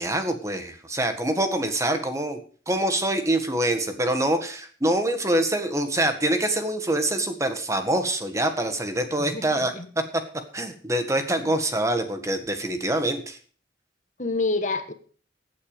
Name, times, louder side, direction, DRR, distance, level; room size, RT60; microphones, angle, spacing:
voice 1, 0.0-2.4 2.7-9.7 10.5-13.4, right 1 dB, 15° right, 7 dB, 1.7 m, -25 dB
voice 2, 9.2-9.9 11.4-11.5 14.2-14.9, left 3 dB, 45° left, 9 dB, 1.3 m, -28 dB
16.5 x 8.6 x 5.1 m, 0.43 s
head